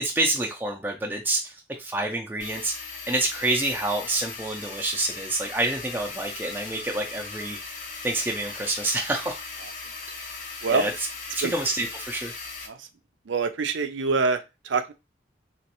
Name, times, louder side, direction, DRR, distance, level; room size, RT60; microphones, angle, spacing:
voice 1, 0.0-7.6 8.0-9.3 10.7-12.3, right 2 dB, 10° right, 1 dB, 0.4 m, -28 dB
sound 1, 2.4-12.7, left 4 dB, 40° left, 0.6 m, -38 dB
voice 2, 13.3-14.4 14.7-14.9, right 4 dB, 75° right, 9 dB, 0.5 m, -24 dB
3.0 x 3.0 x 2.9 m, 0.25 s
head